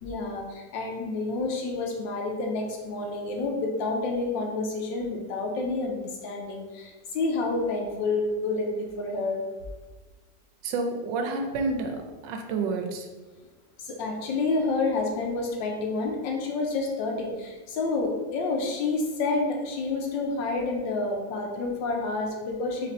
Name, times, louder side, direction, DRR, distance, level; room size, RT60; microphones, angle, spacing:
voice 1, 0.0-9.4 13.8-22.9, left 3 dB, 85° left, 1 dB, 1.4 m, -29 dB
voice 2, 10.6-12.0 12.2-13.1, right 3 dB, 85° right, 4 dB, 1.3 m, -29 dB
4.0 x 2.5 x 4.2 m, 1.3 s
omnidirectional pair, 1.9 m